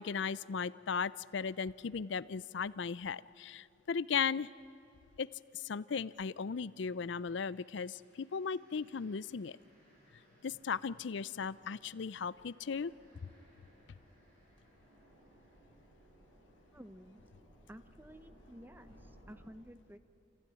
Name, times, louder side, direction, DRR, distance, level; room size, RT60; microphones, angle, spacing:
voice 1, 0.0-4.5 5.2-5.3 5.5-9.6 10.4-12.9, left 6 dB, 65° left, 19 dB, 0.5 m, -37 dB
sound 1, 4.3-4.4 5.0-19.4, equal, 45° right, 6.8 m, -64 dB
voice 2, 16.7-17.3 17.7-20.0, equal, 10° right, 11 dB, 0.7 m, -53 dB
27.0 x 15.5 x 9.9 m, 2.6 s
head